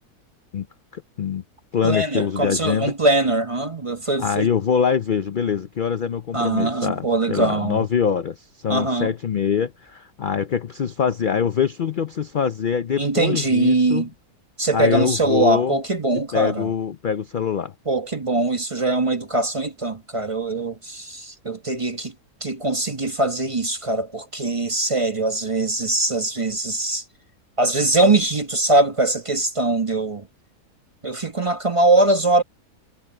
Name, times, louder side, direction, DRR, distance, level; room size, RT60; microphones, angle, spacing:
voice 1, 0.9-1.4 1.7-2.9 4.2-14.1 14.7-15.8 16.3-17.7, left 7 dB, 55° left, 0.5 m, -24 dB
voice 2, 1.8-4.5 6.3-7.8 8.7-9.1 13.0-14.1 14.6-16.7 17.9-22.1 22.4-27.0 27.6-30.3 31.0-32.4, right 2 dB, 25° right, 1.1 m, -22 dB
omnidirectional pair, 1.6 m